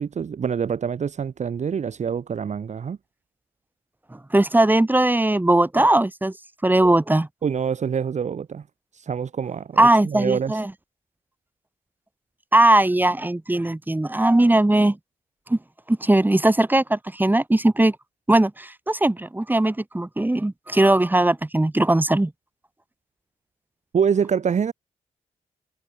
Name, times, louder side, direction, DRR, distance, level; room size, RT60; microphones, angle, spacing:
voice 1, 0.0-3.0 7.4-8.6 8.9-10.6 23.9-24.7, right 7 dB, 55° right, 1.2 m, -25 dB
voice 2, 4.1-6.3 6.6-7.3 9.8-10.7 12.5-15.0 15.5-15.6 15.9-17.9 18.3-22.3, right 1 dB, 15° right, 1.5 m, -19 dB
cardioid pair, 65°, 14 cm